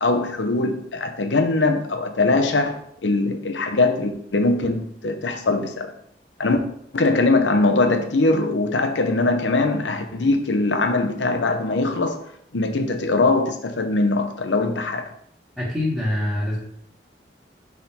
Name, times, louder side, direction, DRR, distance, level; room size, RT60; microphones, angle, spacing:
voice 1, 0.0-5.9 6.4-6.6 6.9-12.2 12.5-15.1, left 2 dB, 80° left, 0.7 m, -21 dB
voice 2, 15.6-16.6, left 1 dB, 5° right, 1.4 m, -24 dB
6.0 x 3.6 x 4.3 m
head